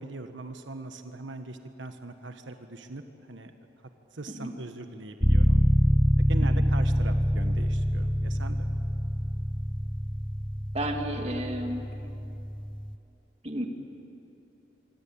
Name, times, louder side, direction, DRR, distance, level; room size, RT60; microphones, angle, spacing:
voice 1, 0.0-3.5 4.1-5.6 6.3-8.7, right 2 dB, 85° right, 7 dB, 1.4 m, -40 dB
sound 1, 5.2-13.0, equal, 5° left, 0.6 m, -25 dB
voice 2, 10.7-11.9 13.4-13.7, right 1 dB, 35° right, 3 dB, 2.3 m, -32 dB
25.5 x 25.0 x 8.7 m, 2.9 s
head